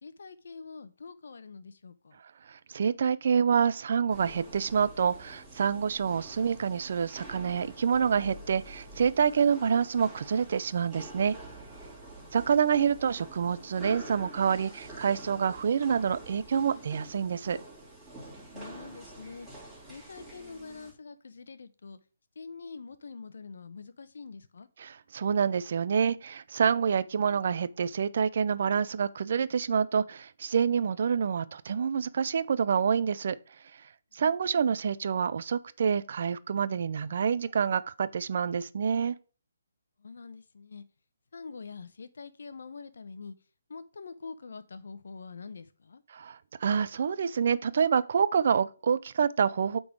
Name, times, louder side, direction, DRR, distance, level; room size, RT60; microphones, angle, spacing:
voice 1, 0.0-2.2 18.5-19.6 19.9-22.0 22.3-24.7 34.1-34.2 40.0-40.8 41.3-43.4 43.7-46.0, left 4 dB, 70° left, 0.8 m, -45 dB
voice 2, 2.5-11.3 12.3-17.6 24.8-33.4 34.1-39.2 46.1-49.8, right 7 dB, 55° right, 0.5 m, -27 dB
sound 1, 4.1-20.9, right 2 dB, 10° right, 3.2 m, -47 dB
8.6 x 3.9 x 4.7 m
hypercardioid pair, 150°, 0 cm